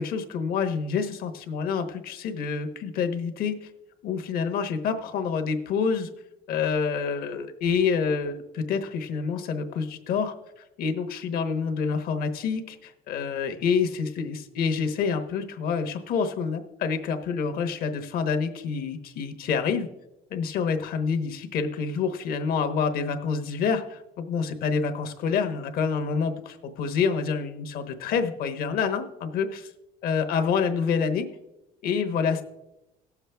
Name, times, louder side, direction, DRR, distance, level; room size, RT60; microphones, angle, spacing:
voice 1, 0.0-3.7 4.0-6.1 6.5-10.3 10.8-19.9 20.3-29.7 30.0-31.3 31.8-32.4, left 6 dB, 70° left, 7 dB, 1.1 m, -27 dB
17.5 x 7.2 x 3.4 m, 0.95 s
cardioid pair, 135°, 16 cm